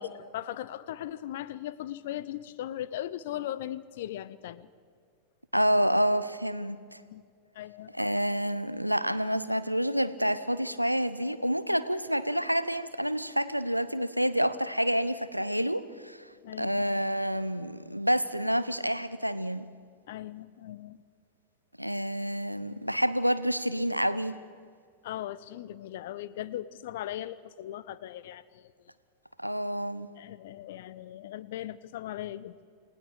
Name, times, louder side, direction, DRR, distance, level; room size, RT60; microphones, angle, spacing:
voice 1, 0.3-4.7 7.1-7.2 7.5-7.9 16.4-16.8 20.1-21.0 25.0-28.6 30.2-32.6, left 12 dB, 55° left, 18 dB, 0.7 m, -38 dB
voice 2, 5.5-7.0 7.9-16.3 16.6-19.7 21.8-24.4 29.4-30.1, equal, 90° right, 14 dB, 0.8 m, -28 dB
28.5 x 18.5 x 4.9 m, 2.1 s
figure-of-eight pair, 90°, 0 cm